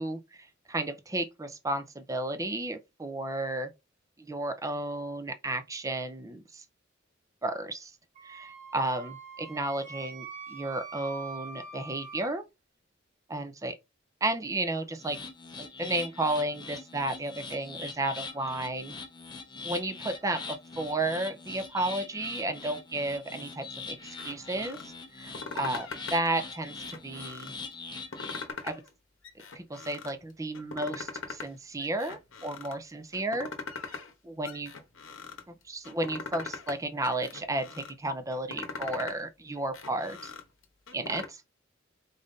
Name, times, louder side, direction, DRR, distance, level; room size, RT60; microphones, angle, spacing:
voice 1, 0.0-3.7 4.2-6.6 7.4-7.9 8.2-12.4 13.3-13.7 14.2-15.2 15.6-18.9 19.6-27.5 28.6-28.8 29.5-33.5 33.9-34.0 34.2-34.7 35.5-40.3 40.9-41.4, right 2 dB, 15° right, 0.5 m, -33 dB
Wind instrument woodwind instrument, 8.1-12.3, right 5 dB, 40° right, 0.9 m, -44 dB
sound 1, 15.0-28.5, left 4 dB, 25° left, 0.6 m, -42 dB
sound 2, 24.1-24.8 25.2-26.3 26.7-27.5 28.0-28.9 29.2-30.1 30.5-31.5 31.8-32.7 33.1-34.1 34.4-35.4 35.8-36.8 37.0-37.9 38.3-39.2 39.6-41.3, left 4 dB, 85° left, 0.8 m, -41 dB
3.9 x 2.5 x 3.5 m
head